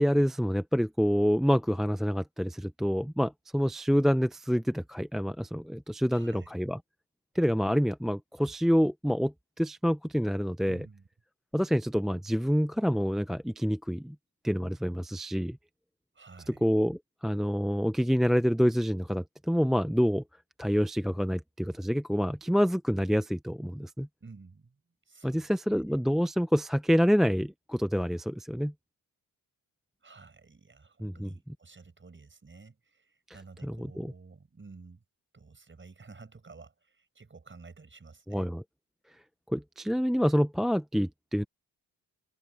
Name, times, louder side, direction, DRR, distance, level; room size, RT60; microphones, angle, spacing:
voice 1, 0.0-6.8 7.3-10.8 11.5-14.2 14.4-15.6 16.5-20.2 20.6-24.1 25.2-28.7 31.0-31.3 33.6-34.1 38.3-38.6 39.5-41.4, equal, ahead, 0.5 m, -27 dB
voice 2, 6.1-6.5 10.7-11.1 16.1-16.7 24.2-24.8 25.1-25.5 25.9-26.0 30.0-35.0 35.3-38.5, right 4 dB, 30° right, 5.9 m, -51 dB
open air
cardioid pair, 115°, 40 cm